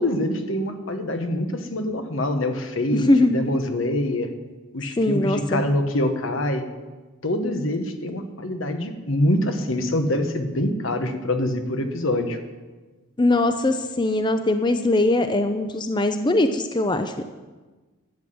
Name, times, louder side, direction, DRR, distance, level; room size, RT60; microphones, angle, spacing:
voice 1, 0.0-4.3 4.7-6.7 7.2-12.4, left 1 dB, 75° left, 7 dB, 1.3 m, -25 dB
voice 2, 2.9-3.4 5.0-5.6 13.2-17.2, left 2 dB, 25° left, 8 dB, 0.5 m, -21 dB
12.0 x 7.8 x 7.9 m, 1.3 s
head